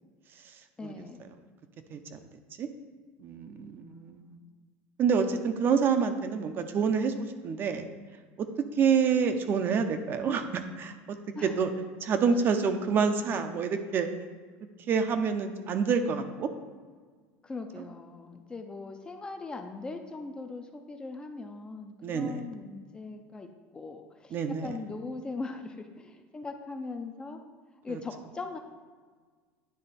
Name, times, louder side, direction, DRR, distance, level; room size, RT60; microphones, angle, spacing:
voice 1, 0.8-1.3 3.9-4.3 11.3-11.6 17.4-27.4 27.8-28.6, left 3 dB, 15° left, 6 dB, 0.4 m, -40 dB
voice 2, 3.2-4.4 5.0-7.8 8.4-8.5 8.8-11.7 12.0-14.1 14.9-16.5 22.0-22.4 24.3-24.7 27.9-28.0, right 6 dB, 35° right, 8 dB, 0.5 m, -27 dB
9.6 x 3.2 x 4.1 m, 1.5 s
supercardioid pair, 135°, 6 cm